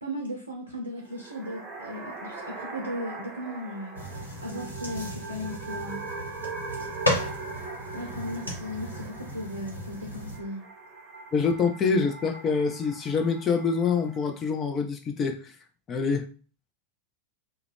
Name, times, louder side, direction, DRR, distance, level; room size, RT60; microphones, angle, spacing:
voice 1, 0.0-6.2 7.9-10.6, equal, 80° right, 0.6 m, -37 dB
sound 1, 1.0-14.4, right 3 dB, 25° right, 0.7 m, -41 dB
sound 2, 4.0-10.4, left 1 dB, 85° left, 0.8 m, -34 dB
voice 2, 11.3-15.6 15.9-16.3, left 5 dB, 25° left, 0.5 m, -26 dB
2.3 x 2.1 x 3.3 m
figure-of-eight pair, 90°, 0 cm